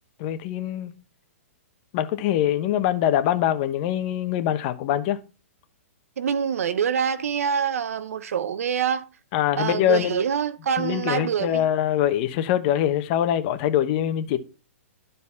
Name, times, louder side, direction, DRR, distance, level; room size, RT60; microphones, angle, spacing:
voice 1, 0.2-0.9 1.9-5.2 9.3-10.2 10.8-14.4, left 11 dB, 40° left, 1.0 m, -23 dB
voice 2, 6.2-9.1 9.6-11.7, right 7 dB, 75° right, 0.9 m, -25 dB
12.0 x 4.1 x 5.7 m
hypercardioid pair, 140°, 8 cm